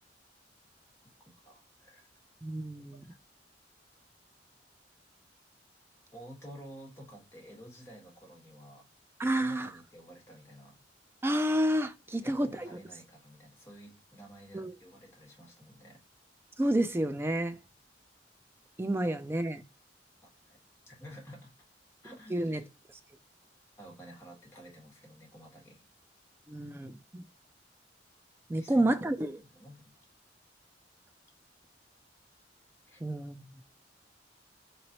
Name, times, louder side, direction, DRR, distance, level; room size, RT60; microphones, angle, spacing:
voice 1, 1.4-2.0 3.0-3.1 6.1-8.8 9.2-10.8 12.1-16.0 20.5-20.6 20.9-21.5 22.0-22.6 23.8-25.9 28.5-29.1 29.4-30.1 32.9-33.0, equal, 15° left, 1.4 m, -51 dB
voice 2, 2.4-3.0 9.2-9.7 11.2-12.7 14.5-14.7 16.6-17.6 18.8-19.6 22.3-22.6 26.5-27.2 28.5-29.4 33.0-33.5, right 1 dB, 15° right, 0.3 m, -30 dB
3.9 x 3.0 x 2.8 m
head